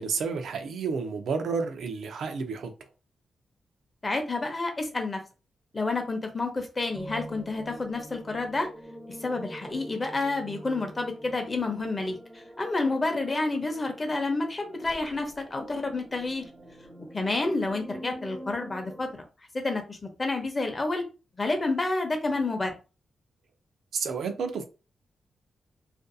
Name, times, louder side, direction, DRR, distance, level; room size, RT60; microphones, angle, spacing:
voice 1, 0.0-2.7 23.9-24.6, right 5 dB, 85° right, 0.4 m, -30 dB
voice 2, 4.0-5.2 5.7-8.7 9.2-16.4 17.0-19.1 19.5-21.0 21.4-22.7, left 3 dB, 30° left, 0.6 m, -29 dB
sound 1, 6.9-19.1, right 1 dB, 20° right, 0.5 m, -45 dB
2.5 x 2.3 x 2.5 m
wide cardioid pair, 110°, 0 cm